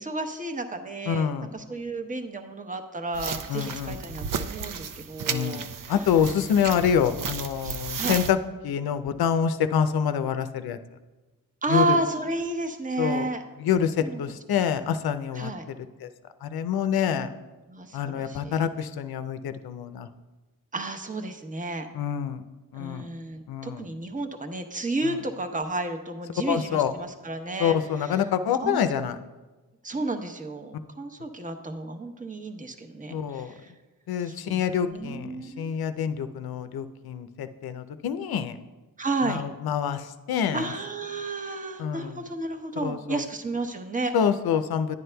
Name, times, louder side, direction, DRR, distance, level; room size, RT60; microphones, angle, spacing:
voice 1, 0.0-6.2 7.6-8.2 11.6-13.4 14.0-14.2 14.5-14.7 15.3-15.6 17.7-18.7 20.7-21.9 22.8-28.2 28.6-29.0 29.8-33.7 34.2-35.7 39.0-39.5 40.5-44.1, right 2 dB, 20° right, 5 dB, 0.8 m, -32 dB
voice 2, 1.1-1.5 3.5-4.0 5.3-5.6 5.9-8.4 8.6-10.8 11.7-12.0 13.0-13.3 13.6-15.8 16.0-16.1 16.4-17.3 17.9-20.1 21.9-22.4 22.7-23.1 23.5-23.9 25.0-25.2 26.5-26.9 27.6-29.2 33.1-33.5 34.1-38.6 39.3-40.7 41.8-42.2 42.8-43.2 44.1-45.0, left 8 dB, 75° left, 10 dB, 0.6 m, -26 dB
sound 1, 3.1-8.3, right 6 dB, 60° right, 0.6 m, -34 dB
10.5 x 9.4 x 2.2 m, 1.2 s
cardioid pair, 65°, 37 cm